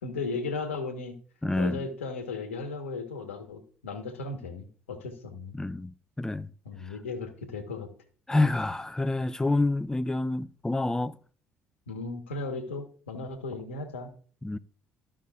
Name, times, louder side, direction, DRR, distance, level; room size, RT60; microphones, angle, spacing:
voice 1, 0.0-1.2 1.6-5.6 6.6-7.9 11.9-14.1, left 3 dB, 90° left, 1.1 m, -36 dB
voice 2, 1.4-1.8 5.5-5.9 6.2-6.5 8.3-11.2 14.4-14.6, left 2 dB, 10° left, 0.5 m, -27 dB
14.0 x 5.6 x 2.4 m
hypercardioid pair, 55°, 7 cm